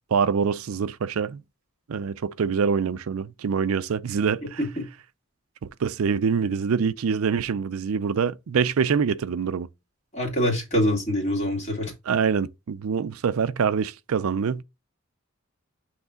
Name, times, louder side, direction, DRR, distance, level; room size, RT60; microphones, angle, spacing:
voice 1, 0.1-1.4 1.9-4.6 5.6-9.7 12.1-14.6, right 6 dB, 80° right, 0.4 m, -25 dB
voice 2, 10.1-11.9, equal, 30° left, 2.2 m, -25 dB
8.0 x 3.3 x 3.7 m
head